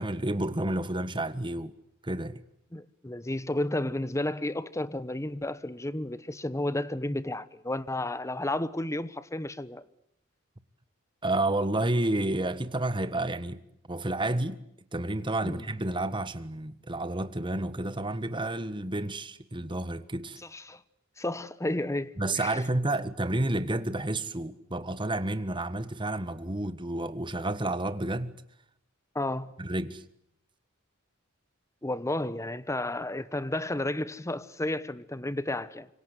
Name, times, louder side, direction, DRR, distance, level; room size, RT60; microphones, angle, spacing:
voice 1, 0.0-1.7 2.0-2.4 11.2-13.6 13.9-14.6 14.9-20.4 22.2-28.3 29.6-30.0, right 1 dB, 25° right, 1.4 m, -30 dB
voice 2, 2.7-9.8 15.4-15.7 20.5-20.8 21.2-22.6 29.1-29.5 31.8-35.9, left 1 dB, 15° left, 1.0 m, -32 dB
26.5 x 24.5 x 8.1 m
head